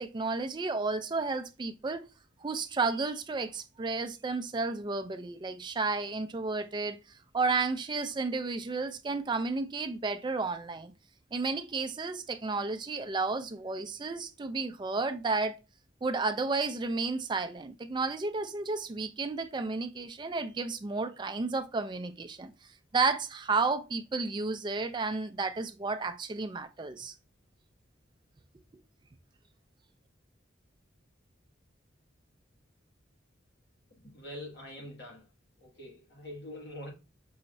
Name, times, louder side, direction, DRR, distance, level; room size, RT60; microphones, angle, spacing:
voice 1, 0.0-2.0 2.4-7.0 7.3-10.9 11.3-15.6 16.0-22.5 22.9-27.1, right 3 dB, 25° right, 0.4 m, -32 dB
voice 2, 34.0-35.3 35.6-36.9, left 1 dB, 60° left, 1.8 m, -44 dB
5.5 x 3.0 x 2.6 m
head